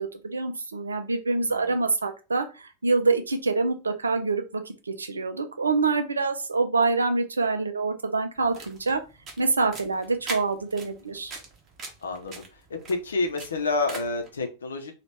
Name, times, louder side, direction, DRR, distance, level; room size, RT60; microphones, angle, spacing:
voice 1, 0.0-9.0 9.4-11.3, right 3 dB, 75° right, 0.5 m, -26 dB
sound 1, 8.4-14.3, right 3 dB, 30° right, 0.9 m, -42 dB
voice 2, 12.0-12.4 12.7-14.9, left 3 dB, 70° left, 0.7 m, -29 dB
3.0 x 2.4 x 3.3 m
figure-of-eight pair, 90°, 0 cm